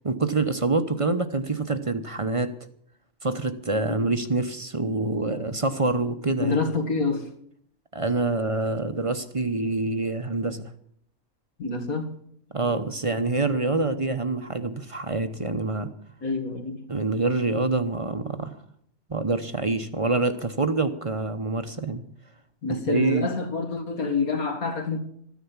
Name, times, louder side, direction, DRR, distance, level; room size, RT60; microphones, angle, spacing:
voice 1, 0.0-2.5 3.2-6.6 7.9-10.6 12.5-15.9 16.9-18.5 19.1-22.0 22.7-23.3, right 3 dB, 30° right, 0.8 m, -26 dB
voice 2, 6.4-7.3 11.6-12.1 12.7-12.8 16.2-16.9 22.6-25.0, left 4 dB, 85° left, 2.4 m, -27 dB
14.0 x 9.9 x 7.2 m
omnidirectional pair, 1.5 m